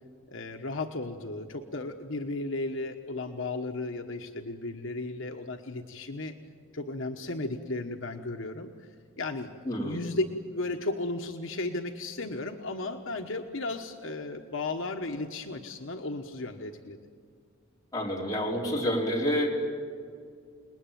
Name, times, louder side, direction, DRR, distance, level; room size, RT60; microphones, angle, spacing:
voice 1, 0.3-6.3 6.7-8.7 9.2-9.5 9.8-10.3 10.5-17.0, left 2 dB, 65° left, 4 dB, 1.3 m, -34 dB
voice 2, 9.6-10.0 17.9-19.5, equal, 15° left, -3 dB, 4.3 m, -28 dB
29.0 x 20.5 x 9.2 m, 2.2 s
head